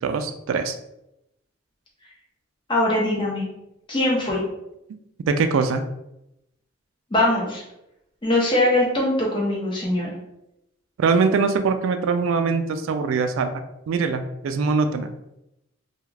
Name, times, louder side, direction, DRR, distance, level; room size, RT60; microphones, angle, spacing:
voice 1, 0.0-0.8 5.3-5.8 11.0-15.1, right 4 dB, 85° right, 8 dB, 0.3 m, -22 dB
voice 2, 2.7-3.5 3.9-4.4 7.1-7.6 8.2-10.1, left 1 dB, 25° left, -3 dB, 0.7 m, -21 dB
2.3 x 2.3 x 3.2 m, 0.85 s
head